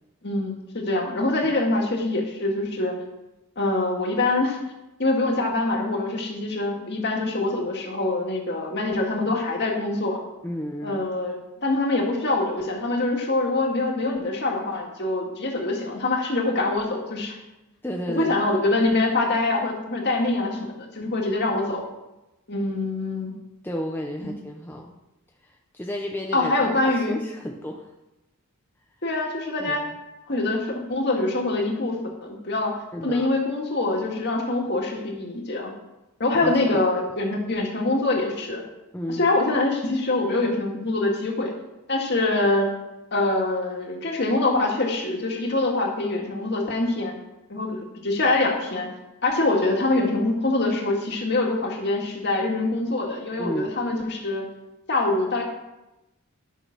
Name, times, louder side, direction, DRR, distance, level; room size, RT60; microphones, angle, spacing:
voice 1, 0.2-3.0 3.6-4.6 5.0-10.2 10.8-11.4 11.6-17.4 18.2-21.8 22.5-23.3 24.2-24.3 26.3-27.2 29.0-29.8 30.3-32.0 32.2-32.7 33.0-35.7 36.2-38.6 39.1-41.5 41.9-42.7 43.1-47.1 47.5-48.9 49.2-54.4 54.9-55.4, left 2 dB, 50° left, 0 dB, 2.0 m, -24 dB
voice 2, 10.4-11.1 17.8-18.4 23.6-25.0 25.4-27.9 29.6-29.8 32.9-33.3 36.3-36.9 38.9-39.2 53.4-53.7, left 1 dB, 10° left, 0 dB, 0.7 m, -32 dB
11.0 x 6.1 x 6.0 m, 0.97 s
head